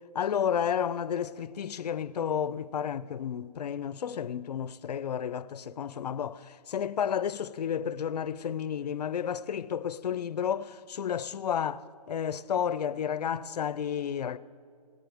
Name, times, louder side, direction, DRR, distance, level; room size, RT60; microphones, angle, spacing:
voice 1, 0.1-14.4, left 8 dB, 85° left, 0.5 m, -31 dB
18.0 x 12.5 x 3.5 m
hypercardioid pair, 150°, 20 cm